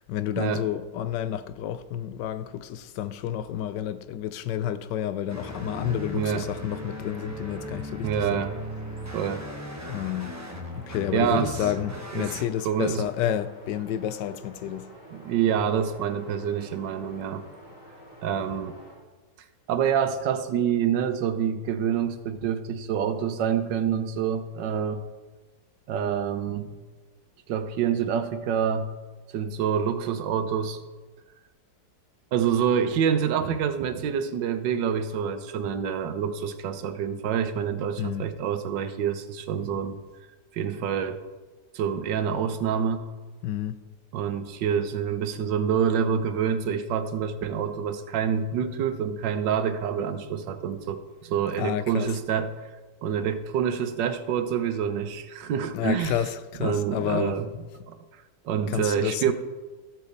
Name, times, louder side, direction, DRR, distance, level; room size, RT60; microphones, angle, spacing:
voice 1, 0.0-8.4 9.9-10.4 10.7-14.9 38.0-38.3 43.4-43.8 51.6-52.1 55.7-57.6 58.7-59.3, left 10 dB, 80° left, 1.2 m, -30 dB
sound 1, 5.3-12.4, equal, 15° right, 0.8 m, -38 dB
voice 2, 6.1-6.5 8.0-8.6 9.1-9.5 11.1-11.6 12.1-12.3 12.6-13.1 15.1-17.4 18.2-18.8 19.7-25.0 25.9-26.8 27.5-28.9 29.3-30.8 32.3-40.0 40.5-41.2 41.7-43.1 44.1-52.5 53.0-56.2 56.6-57.5 57.9-58.0 58.4-59.3, right 8 dB, 85° right, 1.5 m, -27 dB
sound 2, 8.3-18.9, equal, 65° left, 3.5 m, -49 dB
13.5 x 8.3 x 4.0 m
omnidirectional pair, 1.9 m